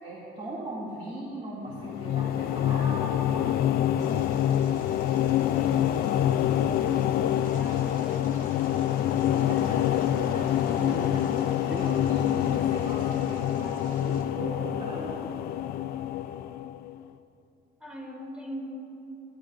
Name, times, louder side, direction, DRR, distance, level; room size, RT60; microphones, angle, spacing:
voice 1, 0.0-3.6 9.3-10.0 10.3-11.0 11.7-15.4, right 1 dB, 40° right, -6 dB, 2.4 m, -39 dB
sound 1, 1.7-17.0, left 11 dB, 65° left, 0.4 m, -26 dB
sound 2, 4.0-14.2, right 3 dB, 55° right, 2.5 m, -52 dB
voice 2, 5.5-8.7 10.6-11.8 13.3-13.4 17.8-18.7, equal, 5° right, -2 dB, 3.2 m, -43 dB
sound 3, 8.6-16.2, right 3 dB, 85° right, 1.3 m, -44 dB
26.5 x 12.0 x 2.6 m, 2.8 s
cardioid pair, 110°, 17 cm